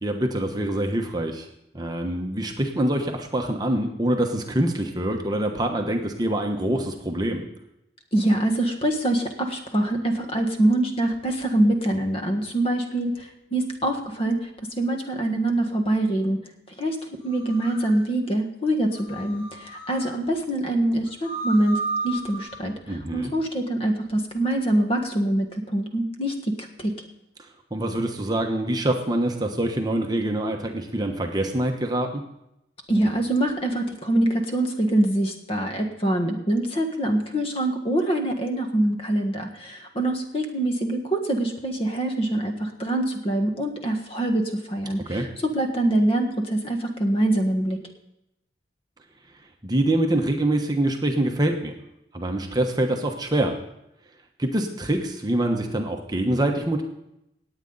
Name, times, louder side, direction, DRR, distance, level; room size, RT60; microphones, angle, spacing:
voice 1, 0.0-1.5 1.7-7.4 22.9-23.3 27.7-32.2 45.1-45.3 49.6-51.7 52.1-53.6 54.4-56.8, right 1 dB, 20° right, 3 dB, 1.0 m, -25 dB
voice 2, 8.1-14.5 14.8-16.4 16.8-17.0 17.2-26.9 32.9-47.8, right 1 dB, 30° left, 4 dB, 1.5 m, -24 dB
sound 1, 17.2-17.9 18.9-20.1 21.1-22.5, right 3 dB, 75° left, 4.1 m, -33 dB
18.5 x 8.6 x 4.0 m, 0.84 s
head